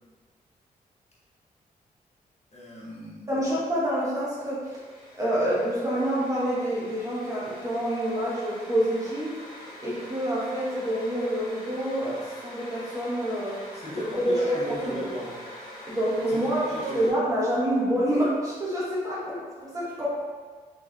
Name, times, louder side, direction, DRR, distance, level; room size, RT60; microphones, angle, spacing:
voice 1, 2.5-3.4 13.5-15.4 16.3-17.1, equal, 40° left, -7 dB, 1.1 m, -36 dB
voice 2, 3.3-4.8 5.2-9.4 9.8-13.6 14.0-14.4 14.7-15.1 15.8-16.6 16.9-20.1, right 1 dB, 20° right, -8 dB, 1.2 m, -27 dB
sound 1, 4.6-17.1, left 1 dB, 60° left, 1.3 m, -44 dB
3.8 x 3.0 x 2.4 m, 1.5 s
cardioid pair, 60°, 16 cm